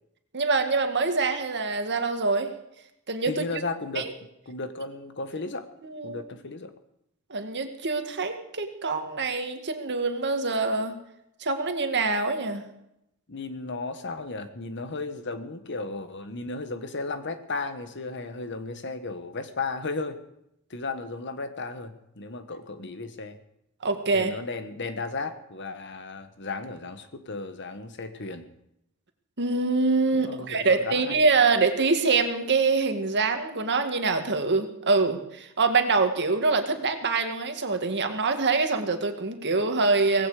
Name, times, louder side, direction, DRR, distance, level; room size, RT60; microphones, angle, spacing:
voice 1, 0.3-2.5 3.1-3.4 4.0-4.1 5.8-6.2 7.3-11.0 11.4-12.6 23.8-24.3 29.4-40.3, right 4 dB, 55° right, 6 dB, 2.0 m, -25 dB
voice 2, 3.3-4.1 4.5-5.7 6.0-6.7 13.3-20.2 20.7-23.4 24.1-28.4 30.1-31.3, left 3 dB, 55° left, 10 dB, 1.5 m, -34 dB
18.0 x 16.0 x 5.0 m, 0.80 s
head